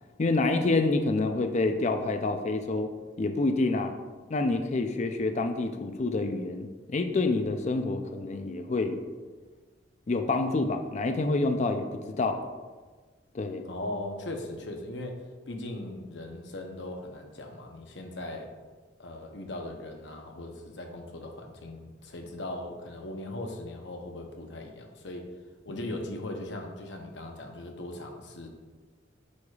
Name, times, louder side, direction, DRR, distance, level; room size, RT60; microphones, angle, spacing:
voice 1, 0.2-2.9 3.2-3.9 4.3-9.0 10.1-12.4 13.3-13.6, left 3 dB, 40° left, 6 dB, 0.4 m, -27 dB
voice 2, 13.6-18.5 19.0-25.3 25.7-28.5, left 1 dB, 70° left, 3 dB, 0.8 m, -39 dB
8.4 x 4.9 x 2.4 m, 1.4 s
head